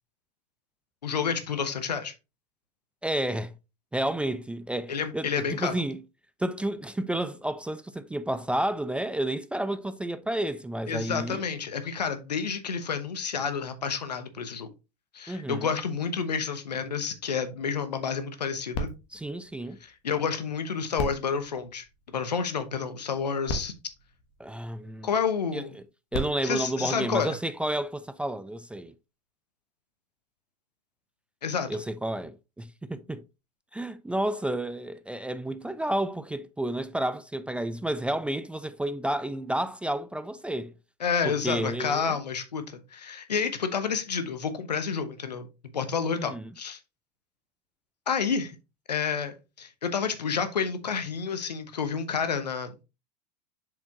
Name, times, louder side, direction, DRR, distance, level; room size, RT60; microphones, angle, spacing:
voice 1, 1.0-2.1 4.9-5.8 10.9-14.7 15.1-18.9 19.8-21.8 22.1-23.7 25.0-25.7 26.4-27.4 31.4-31.8 41.0-45.5 45.7-46.8 48.1-48.6 48.9-52.8, left 6 dB, 85° left, 1.0 m, -30 dB
voice 2, 3.0-3.5 3.9-6.0 6.4-11.4 15.3-15.7 19.1-19.8 24.4-25.1 25.5-25.6 26.1-28.9 31.7-33.2 33.7-40.7 41.2-42.2 46.1-46.4, right 1 dB, 5° right, 0.3 m, -31 dB
sound 1, 18.7-20.4 20.9-22.5 23.2-23.3 23.5-25.0 25.9-27.7 28.4-28.5, left 1 dB, 55° left, 1.4 m, -38 dB
6.9 x 5.0 x 2.9 m
hypercardioid pair, 85°, 21 cm